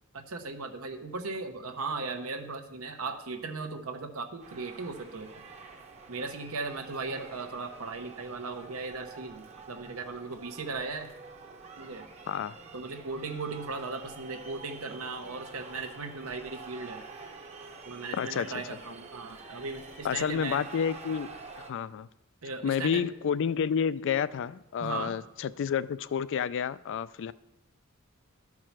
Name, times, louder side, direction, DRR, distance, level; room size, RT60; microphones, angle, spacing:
voice 1, 0.1-5.4 6.1-11.1 11.8-12.0 12.7-17.0 17.8-20.6 22.4-23.1 24.8-25.1, right 4 dB, 85° right, 1.0 m, -37 dB
sound 1, 4.4-21.7, right 4 dB, 30° right, 0.8 m, -48 dB
voice 2, 18.1-18.5 20.0-21.3 21.6-22.1 22.6-27.3, left 7 dB, 60° left, 0.3 m, -30 dB
12.5 x 4.8 x 5.9 m
head